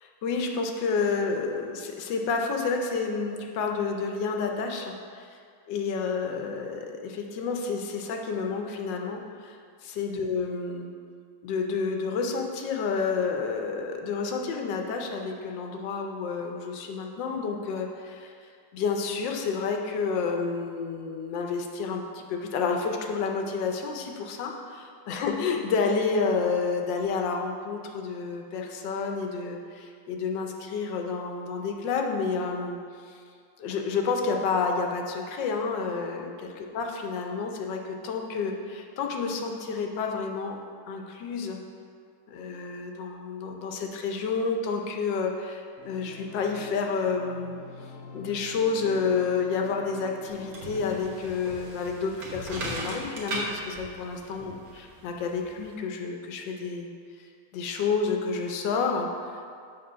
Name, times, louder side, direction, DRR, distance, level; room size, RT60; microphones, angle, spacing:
voice 1, 0.2-5.4 5.7-9.6 9.8-10.9 11.4-18.3 18.7-32.8 33.1-33.2 33.6-40.6 40.9-41.6 42.3-47.5 48.1-54.5 55.0-56.9 57.5-59.5, left 5 dB, 80° left, 3 dB, 1.3 m, -30 dB
Organ, 45.8-51.5, left 4 dB, 60° left, 1.0 m, -46 dB
sound 1, 50.3-55.7, right 1 dB, 55° right, 1.6 m, -38 dB
6.7 x 3.7 x 5.5 m, 2.2 s
omnidirectional pair, 2.0 m